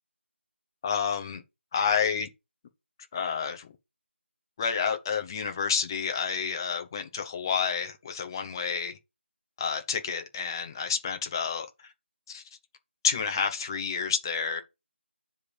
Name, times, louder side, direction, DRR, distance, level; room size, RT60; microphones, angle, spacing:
voice 1, 0.8-1.4 1.7-2.3 3.1-3.7 4.6-9.0 9.6-11.7 12.3-12.4 13.0-14.6, left 6 dB, 20° left, 0.9 m, -29 dB
9.5 x 3.6 x 6.7 m
figure-of-eight pair, 165°, 7 cm